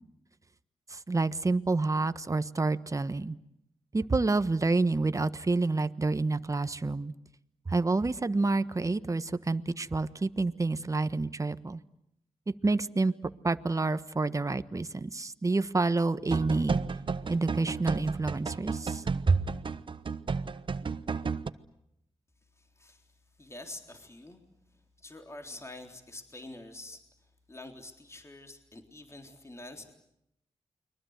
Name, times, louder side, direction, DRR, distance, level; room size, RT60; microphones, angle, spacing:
voice 1, 0.9-3.4 3.9-7.1 7.7-11.8 12.5-13.1 13.4-16.8 17.3-19.4, right 3 dB, 30° right, 13 dB, 1.3 m, -28 dB
sound 1, 16.3-21.5, right 5 dB, 50° right, 1.1 m, -33 dB
voice 2, 22.5-29.9, left 2 dB, 25° left, 5 dB, 3.7 m, -47 dB
29.5 x 23.0 x 8.1 m, 0.79 s
cardioid pair, 60°, 11 cm